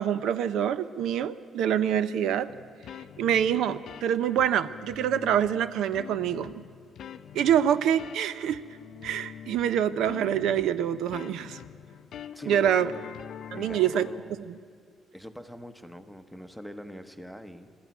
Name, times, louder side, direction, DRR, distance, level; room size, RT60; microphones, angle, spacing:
voice 1, 0.0-2.5 3.2-6.7 7.3-8.6 9.0-11.6 12.5-12.9 13.5-14.1, right 9 dB, 80° right, 14 dB, 0.6 m, -26 dB
sound 1, 2.5-14.1, left 9 dB, 55° left, 0.5 m, -45 dB
voice 2, 12.3-13.1 13.5-14.4 15.1-17.7, equal, ahead, 10 dB, 0.9 m, -43 dB
21.5 x 13.0 x 9.3 m, 2.2 s
cardioid pair, 165°, 0 cm